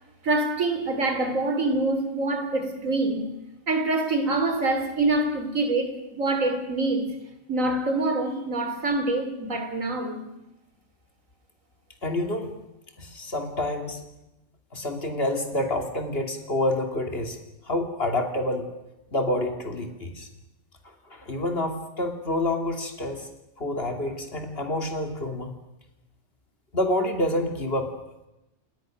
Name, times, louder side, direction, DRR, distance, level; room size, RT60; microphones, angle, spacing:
voice 1, 0.2-3.3 3.7-7.1 7.5-10.2, right 2 dB, 85° right, 3.5 m, -25 dB
voice 2, 12.0-12.5 13.0-14.0 14.7-17.4 17.6-18.7 19.1-20.3 21.1-23.3 23.6-25.5 26.7-27.9, left 1 dB, 50° left, 3.1 m, -28 dB
29.0 x 20.0 x 6.5 m
omnidirectional pair, 1.3 m